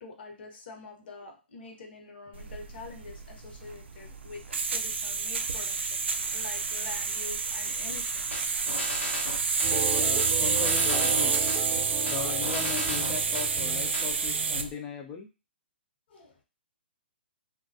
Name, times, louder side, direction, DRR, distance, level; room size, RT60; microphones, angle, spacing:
voice 1, 0.0-4.4 4.7-8.5 16.1-16.4, left 3 dB, 60° left, 3 dB, 0.9 m, -45 dB
sound 1, 2.3-14.7, right 5 dB, 80° right, 0.4 m, -29 dB
sound 2, 8.3-9.7 10.2-11.6 12.1-13.5 13.9-14.1, left 1 dB, 90° left, 0.8 m, -36 dB
voice 2, 9.6-11.4 12.1-15.3, left 6 dB, 20° left, 1 dB, 0.3 m, -38 dB
sound 3, 9.6-14.7, right 8 dB, 30° right, 0.6 m, -36 dB
2.2 x 2.2 x 2.6 m, 0.29 s
hypercardioid pair, 130°, 6 cm